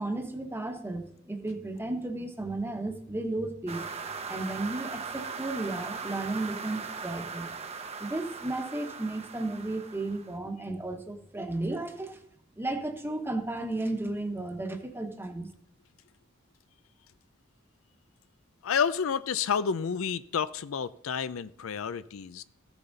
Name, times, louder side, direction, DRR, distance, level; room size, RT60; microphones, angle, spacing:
voice 1, 0.0-3.9 4.3-7.5 8.0-12.2 12.6-15.5, right 2 dB, 10° right, 5 dB, 1.1 m, -34 dB
sound 1, 3.7-10.4, right 5 dB, 30° right, 0.8 m, -39 dB
voice 2, 18.6-22.4, left 6 dB, 75° left, 14 dB, 0.5 m, -30 dB
15.0 x 7.1 x 4.0 m, 0.76 s
head